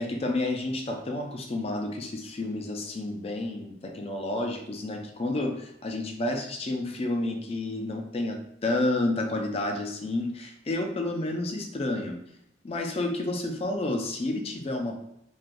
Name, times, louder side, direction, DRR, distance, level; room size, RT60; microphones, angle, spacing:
voice 1, 0.0-12.2 12.6-14.9, left 2 dB, 35° left, 3 dB, 0.4 m, -30 dB
3.2 x 2.2 x 2.4 m, 0.77 s
head